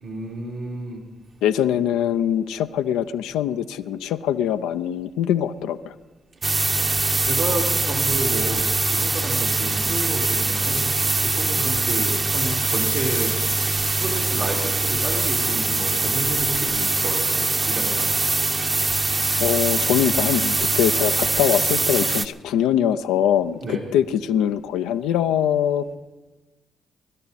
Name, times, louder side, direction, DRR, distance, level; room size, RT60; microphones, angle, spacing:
voice 1, 0.0-1.0 6.4-6.5 7.2-10.9 11.2-18.1 23.6-23.9, right 2 dB, 75° right, -5 dB, 2.7 m, -31 dB
voice 2, 1.4-5.9 11.6-11.7 19.4-25.9, left 10 dB, 85° left, 9 dB, 0.5 m, -23 dB
sound 1, 6.4-22.3, right 3 dB, 35° right, 1.0 m, -22 dB
23.0 x 11.5 x 4.2 m, 1.2 s
supercardioid pair, 55°, 0 cm